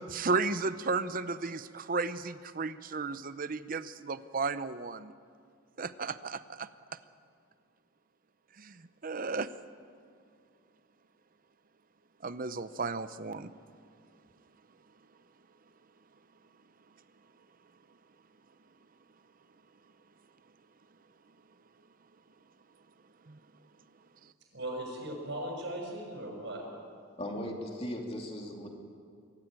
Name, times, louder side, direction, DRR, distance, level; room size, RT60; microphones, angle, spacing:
voice 1, 0.1-5.1 5.8-6.7 8.6-8.7 9.0-9.5 12.2-13.5 23.3-23.4, right 4 dB, 45° right, 13 dB, 0.7 m, -34 dB
voice 2, 24.5-26.6, right 1 dB, 60° right, 0 dB, 6.7 m, -38 dB
voice 3, 27.2-28.7, left 1 dB, 30° left, 1 dB, 2.7 m, -37 dB
23.5 x 14.5 x 9.1 m, 2.2 s
head